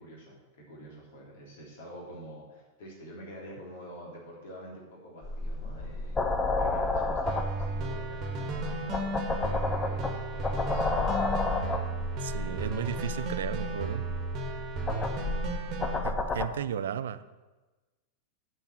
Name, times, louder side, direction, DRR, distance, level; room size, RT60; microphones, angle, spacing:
voice 1, 0.0-6.2 6.6-10.9 12.1-14.3 14.7-16.0, right 1 dB, 55° left, -2 dB, 3.4 m, -48 dB
sound 1, 5.2-16.5, left 2 dB, 15° left, 0.8 m, -31 dB
sound 2, 7.3-16.0, right 2 dB, 35° right, 1.5 m, -34 dB
voice 2, 12.2-14.0 16.0-17.2, right 9 dB, 60° right, 13 dB, 0.5 m, -34 dB
9.2 x 5.7 x 7.4 m, 1.2 s
figure-of-eight pair, 90°, 0 cm